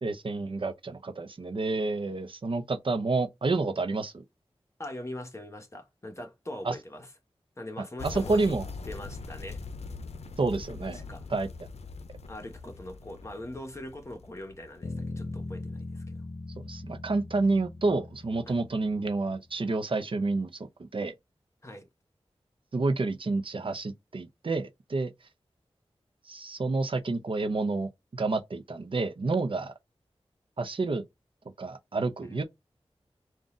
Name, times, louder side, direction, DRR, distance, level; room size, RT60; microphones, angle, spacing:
voice 1, 0.0-4.2 6.6-6.7 8.0-8.6 10.4-11.0 11.3-11.7 16.6-21.1 22.7-25.1 26.3-29.7 30.6-31.0 31.6-32.4, right 3 dB, 55° right, 0.7 m, -29 dB
voice 2, 4.8-7.1 7.6-8.5 8.8-9.6 10.9-11.3 12.3-16.1 18.5-18.6 21.6-21.9 32.3-32.4, left 1 dB, 25° left, 1.1 m, -42 dB
sound 1, 8.0-15.7, left 4 dB, 85° left, 0.5 m, -42 dB
Bass guitar, 14.8-19.2, left 2 dB, 60° left, 0.9 m, -40 dB
3.9 x 2.4 x 3.8 m
wide cardioid pair, 70°, 11 cm